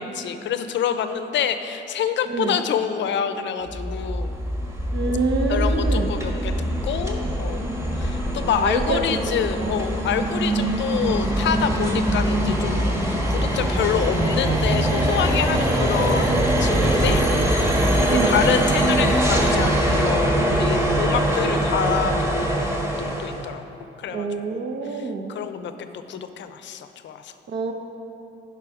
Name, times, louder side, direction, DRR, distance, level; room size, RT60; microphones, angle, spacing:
voice 1, 0.0-4.4 5.5-17.2 18.0-23.6 24.0-27.3, left 8 dB, 65° left, 9 dB, 0.6 m, -27 dB
voice 2, 2.3-2.6 4.9-6.1 8.6-9.2 9.6-9.8 18.0-18.4 24.1-25.4 27.5-27.7, right 3 dB, 65° right, 5 dB, 0.9 m, -26 dB
sound 1, 3.7-23.5, right 1 dB, 15° right, 1.4 m, -22 dB
11.0 x 5.6 x 4.9 m, 2.9 s
cardioid pair, 90°, 20 cm